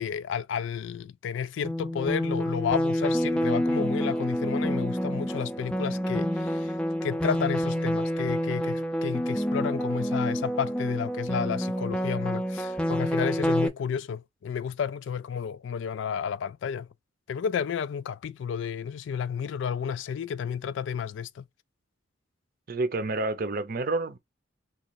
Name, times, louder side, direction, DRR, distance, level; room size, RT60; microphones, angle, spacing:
voice 1, 0.0-6.7 7.0-16.9 17.3-21.4, left 7 dB, 70° left, 0.3 m, -31 dB
sound 1, 1.6-13.7, equal, 5° left, 0.5 m, -28 dB
voice 2, 22.7-24.2, right 2 dB, 50° right, 0.6 m, -29 dB
3.1 x 2.4 x 3.9 m
head